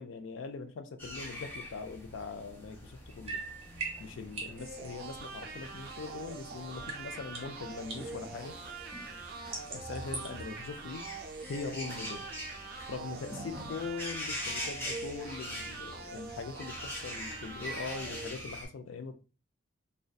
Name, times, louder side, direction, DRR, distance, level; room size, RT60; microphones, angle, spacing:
voice 1, 0.0-3.4 4.0-8.5 9.7-11.0 11.5-12.2 12.9-19.2, left 4 dB, 80° left, 0.4 m, -41 dB
sound 1, 1.0-18.7, left 1 dB, 10° left, 0.5 m, -44 dB
sound 2, 2.0-6.4 6.7-10.4, right 3 dB, 30° right, 0.8 m, -44 dB
sound 3, 4.6-18.3, right 4 dB, 50° right, 0.4 m, -44 dB
2.6 x 2.2 x 2.2 m
head